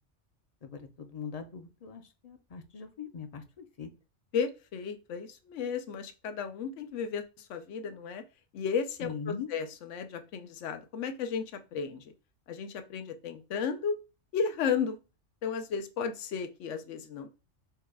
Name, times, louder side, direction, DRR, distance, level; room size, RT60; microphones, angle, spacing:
voice 1, 0.6-3.9 9.0-9.5, left 6 dB, 45° left, 7 dB, 0.5 m, -41 dB
voice 2, 4.3-8.2 8.5-11.4 11.7-12.0 12.5-13.9 14.3-15.0 15.4-17.3, left 6 dB, 90° left, 8 dB, 1.0 m, -34 dB
4.6 x 2.3 x 4.7 m, 0.31 s
omnidirectional pair, 1.2 m